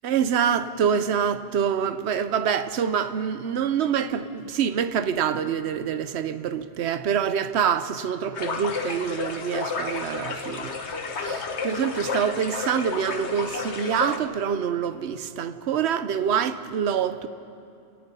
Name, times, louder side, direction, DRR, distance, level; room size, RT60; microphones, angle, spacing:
voice 1, 0.0-10.8 11.2-17.3, right 8 dB, 70° right, 1.0 m, -26 dB
sound 1, 8.3-14.2, left 4 dB, 70° left, 1.5 m, -31 dB
29.0 x 17.5 x 5.5 m
omnidirectional pair, 1.2 m